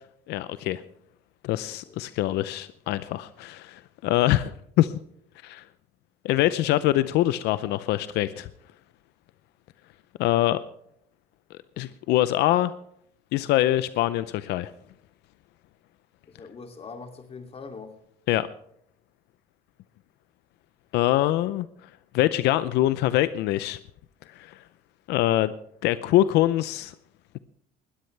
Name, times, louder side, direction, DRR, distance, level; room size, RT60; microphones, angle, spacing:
voice 1, 0.3-0.8 1.4-4.9 5.4-5.6 6.2-8.5 10.2-10.6 11.8-12.7 13.3-14.7 18.3-18.5 20.9-21.7 22.1-23.8 24.3-24.6 25.1-25.5 25.8-26.9, left 14 dB, 85° left, 15 dB, 0.6 m, -24 dB
voice 2, 1.6-2.0 16.3-17.9, left 4 dB, 35° left, 5 dB, 2.7 m, -42 dB
20.0 x 13.5 x 3.3 m, 0.70 s
cardioid pair, 110°, 17 cm